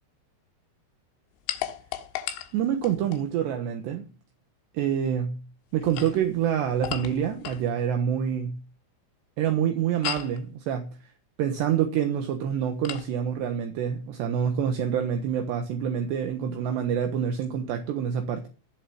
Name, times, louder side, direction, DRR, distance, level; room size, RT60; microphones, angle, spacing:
sound 1, 1.5-3.3 5.7-7.7 10.0-10.4 12.8-13.1, left 12 dB, 90° left, 3.8 m, -35 dB
voice 1, 2.5-4.0 4.7-5.4 5.7-8.6 9.4-10.9 11.4-18.5, right 8 dB, 70° right, 3.3 m, -27 dB
15.5 x 7.0 x 7.7 m
omnidirectional pair, 5.5 m